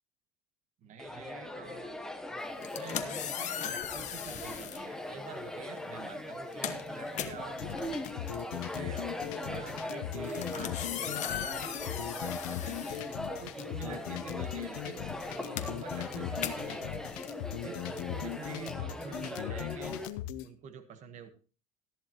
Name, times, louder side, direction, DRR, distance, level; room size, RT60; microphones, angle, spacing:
voice 1, 0.8-2.0 2.6-8.2 8.5-9.1 9.4-13.1 13.4-17.2 17.5-20.0 20.4-21.3, right 6 dB, 40° right, 9 dB, 1.3 m, -47 dB
sound 1, 1.0-20.1, left 1 dB, 5° left, 0.9 m, -40 dB
sound 2, 2.5-4.9 5.7-5.9 6.3-13.8 14.1-18.7, left 10 dB, 35° left, 1.1 m, -40 dB
sound 3, 7.6-20.5, left 13 dB, 70° left, 0.9 m, -39 dB
14.0 x 11.0 x 2.9 m, 0.36 s
cardioid pair, 145°, 20 cm